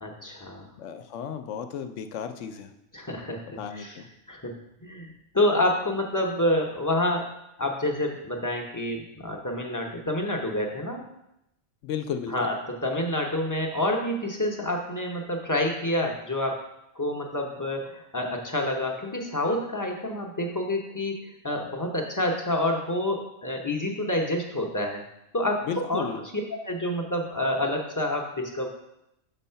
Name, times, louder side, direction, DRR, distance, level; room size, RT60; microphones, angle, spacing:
voice 1, 0.0-0.7 2.9-4.0 4.3-4.6 4.8-7.3 7.6-11.1 12.3-16.6 17.0-25.0 25.3-26.1 26.6-28.7, left 1 dB, 20° left, 1 dB, 0.5 m, -28 dB
voice 2, 0.8-2.7 3.6-4.1 11.8-12.5 25.6-26.2, left 7 dB, 70° left, 8 dB, 0.9 m, -34 dB
6.2 x 4.0 x 5.6 m, 0.84 s
omnidirectional pair, 1.4 m